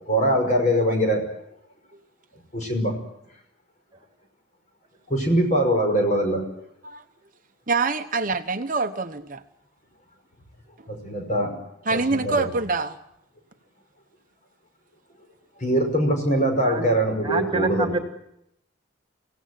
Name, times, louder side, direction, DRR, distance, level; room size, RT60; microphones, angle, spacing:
voice 1, 0.1-1.3 2.5-2.9 5.1-6.4 10.9-11.6 11.9-12.5 15.6-18.0, right 1 dB, 35° left, 5.5 m, -22 dB
voice 2, 7.7-9.4 11.9-13.0, right 3 dB, 40° right, 1.0 m, -25 dB
voice 3, 17.2-18.0, right 2 dB, 25° right, 2.2 m, -26 dB
24.5 x 17.0 x 9.4 m
head